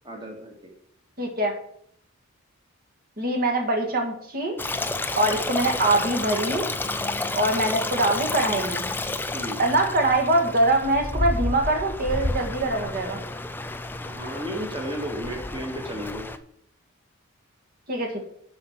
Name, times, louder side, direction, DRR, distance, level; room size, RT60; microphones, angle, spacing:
voice 1, 0.0-0.5 9.3-9.6 14.0-16.3, equal, 20° right, 1 dB, 1.9 m, -33 dB
voice 2, 1.2-1.5 3.2-4.6 5.1-6.7 7.3-8.9 9.6-13.2 17.9-18.3, right 2 dB, 40° right, 3 dB, 1.9 m, -23 dB
Stream, 4.6-16.4, left 2 dB, 10° left, 0.4 m, -30 dB
7.6 x 5.7 x 7.4 m, 0.67 s
head